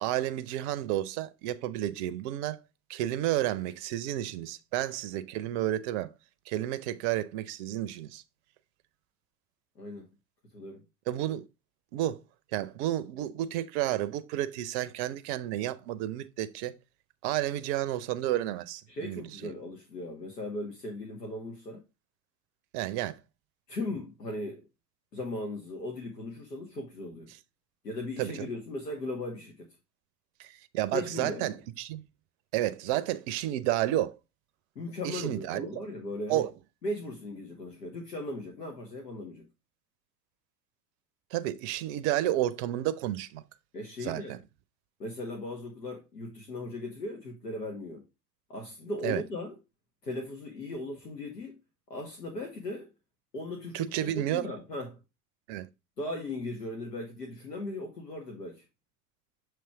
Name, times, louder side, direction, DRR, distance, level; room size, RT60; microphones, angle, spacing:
voice 1, 0.0-2.6 2.9-6.1 6.5-8.2 11.1-11.5 11.9-12.2 12.5-16.7 17.2-19.5 22.7-23.2 28.2-28.5 30.4-32.0 32.5-34.2 35.0-35.8 36.3-36.5 41.3-43.4 44.0-44.4 49.0-49.2 53.7-54.5 55.5-55.7, right 14 dB, 45° right, 0.6 m, -31 dB
voice 2, 9.8-10.1 10.5-10.8 18.9-21.8 23.7-24.6 25.1-27.3 27.8-29.7 30.9-31.5 34.7-36.4 36.8-39.4 43.7-44.4 45.0-48.0 48.5-49.5 50.0-51.6 51.9-52.9 53.3-55.0 56.0-58.6, left 2 dB, 80° left, 1.2 m, -38 dB
6.9 x 3.1 x 4.4 m
figure-of-eight pair, 75°, 48 cm